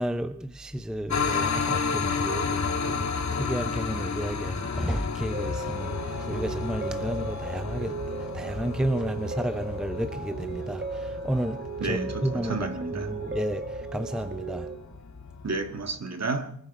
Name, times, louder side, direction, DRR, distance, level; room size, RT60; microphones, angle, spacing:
voice 1, 0.0-14.7, equal, ahead, 0.6 m, -32 dB
sound 1, 1.1-16.0, left 5 dB, 50° left, 1.6 m, -32 dB
sound 2, 5.3-14.8, right 4 dB, 30° right, 1.7 m, -36 dB
voice 2, 11.8-13.1 15.4-16.6, right 3 dB, 45° right, 1.7 m, -31 dB
24.5 x 9.5 x 6.0 m
wide cardioid pair, 100°, 36 cm